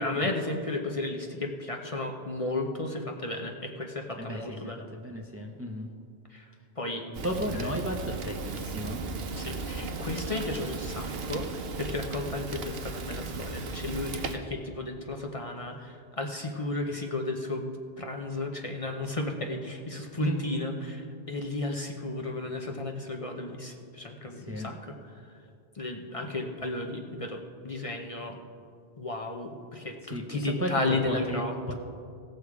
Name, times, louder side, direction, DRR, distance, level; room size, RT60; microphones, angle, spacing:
voice 1, 0.0-4.8 6.3-6.5 6.8-7.1 7.5-7.6 9.4-17.7 18.0-24.9 25.7-28.4 29.0-31.7, left 2 dB, 35° left, 3 dB, 0.8 m, -34 dB
voice 2, 4.2-5.9 7.1-9.0 20.2-20.4 24.3-24.8 30.0-31.7, equal, 15° right, 2 dB, 0.7 m, -34 dB
Fire, 7.1-14.4, right 3 dB, 75° right, 1.0 m, -36 dB
17.0 x 6.6 x 4.8 m, 2.3 s
omnidirectional pair, 1.0 m